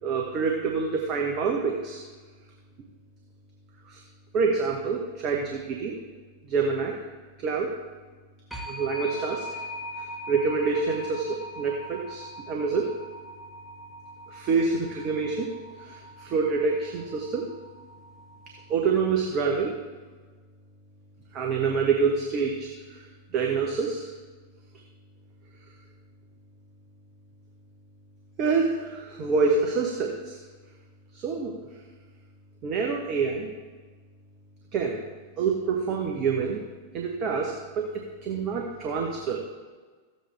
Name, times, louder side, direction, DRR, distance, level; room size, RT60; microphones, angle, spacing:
voice 1, 0.0-2.0 3.9-4.0 4.3-5.9 6.5-7.0 7.4-7.7 8.7-9.6 10.0-12.9 14.3-17.5 18.7-19.7 21.3-23.1 23.3-24.1 28.4-30.4 31.1-31.5 32.6-33.5 34.7-35.0 35.4-36.6 36.9-39.4, right 5 dB, 35° right, 1 dB, 1.1 m, -27 dB
sound 1, 8.5-19.1, equal, ahead, 1.3 m, -41 dB
14.0 x 7.8 x 3.3 m, 1.4 s
figure-of-eight pair, 90°, 0 cm